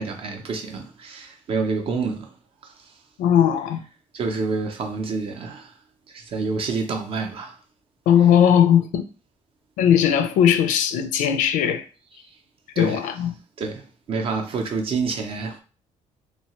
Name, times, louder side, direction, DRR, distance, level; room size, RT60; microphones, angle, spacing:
voice 1, 0.0-2.3 2.6-2.9 4.1-5.8 6.1-7.6 12.2-12.3 12.8-13.1 13.6-15.6, right 4 dB, 45° right, 0.5 m, -28 dB
voice 2, 3.2-3.8 8.1-9.1 9.8-11.8 12.8-13.3, left 9 dB, 85° left, 0.4 m, -18 dB
2.7 x 2.2 x 2.9 m
cardioid pair, 135°, 13 cm